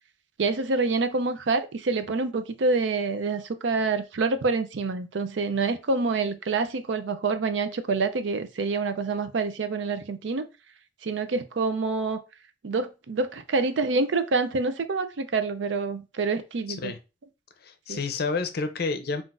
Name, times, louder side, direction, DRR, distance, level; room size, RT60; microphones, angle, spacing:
voice 1, 0.4-10.5 11.0-12.2 12.6-16.9 17.9-18.0, right 3 dB, 70° right, 0.5 m, -27 dB
voice 2, 17.6-19.2, left 4 dB, 55° left, 0.5 m, -29 dB
5.7 x 2.5 x 2.5 m
head